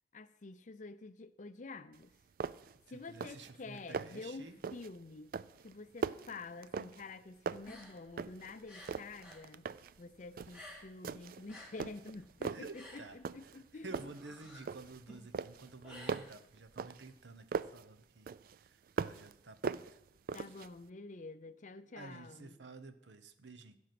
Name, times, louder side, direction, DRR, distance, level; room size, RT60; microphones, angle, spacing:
voice 1, 0.1-2.1 2.9-5.3 5.6-9.7 10.0-13.9 20.3-22.6, left 3 dB, 45° left, 13 dB, 0.6 m, -48 dB
sound 1, 1.9-2.0 2.4-2.8 3.1-3.5 3.8-4.3 4.6-5.0 5.3-7.2 7.5-8.5 8.8-10.0 10.4-10.6 11.0-11.5 11.8-12.7 13.2-13.6 13.9-15.0 15.3-17.8 18.3-19.3 19.6-20.7, right 5 dB, 55° right, 0.3 m, -40 dB
voice 2, 2.9-4.6 12.5-13.2 13.8-18.3 18.6-19.8 22.0-23.8, right 3 dB, 85° right, 11 dB, 0.9 m, -51 dB
sound 2, 7.6-9.5 9.8-11.1 11.4-16.8, left 1 dB, 5° right, 3.1 m, -54 dB
15.5 x 6.1 x 6.0 m, 0.82 s
head